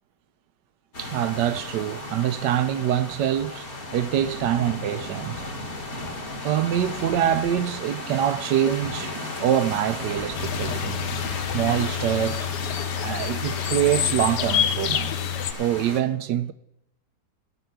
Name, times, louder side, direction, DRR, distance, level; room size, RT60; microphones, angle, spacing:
sound 1, 0.9-16.0, left 2 dB, 40° left, 2.2 m, -35 dB
voice 1, 1.0-5.4 6.4-9.1 9.4-11.0 11.5-12.5 13.0-15.1 15.6-16.5, right 11 dB, 80° right, 1.3 m, -25 dB
sound 2, 10.4-15.5, left 10 dB, 80° left, 1.3 m, -27 dB
12.5 x 6.0 x 9.3 m
omnidirectional pair, 1.9 m